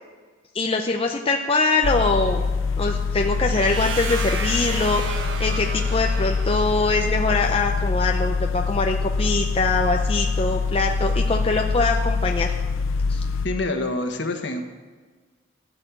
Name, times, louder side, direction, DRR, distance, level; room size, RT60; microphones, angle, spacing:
voice 1, 0.5-2.5 2.8-12.6 13.1-13.2, left 3 dB, 30° left, 2 dB, 0.6 m, -23 dB
sound 1, 1.8-13.5, left 4 dB, 85° left, 0.6 m, -24 dB
sound 2, 3.5-7.3, right 4 dB, 75° right, 1.3 m, -33 dB
voice 2, 13.4-14.6, left 2 dB, 60° left, 5 dB, 1.5 m, -26 dB
15.0 x 6.6 x 9.1 m, 1.5 s
head